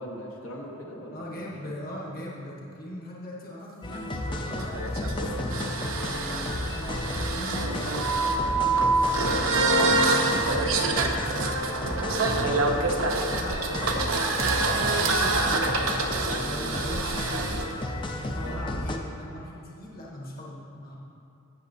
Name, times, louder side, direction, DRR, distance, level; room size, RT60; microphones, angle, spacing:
voice 1, 0.0-1.5 7.6-7.8 12.4-12.6 13.3-13.4 18.4-18.6, equal, 75° left, -2 dB, 1.2 m, -40 dB
voice 2, 1.1-12.5 13.3-14.2 14.6-15.9 16.4-20.9, left 1 dB, 40° left, -4 dB, 1.2 m, -40 dB
sound 1, 3.8-19.0, left 1 dB, 20° left, 0.4 m, -33 dB
sound 2, 3.9-17.6, right 3 dB, 70° right, 0.8 m, -26 dB
16.0 x 6.7 x 2.7 m, 2.6 s
head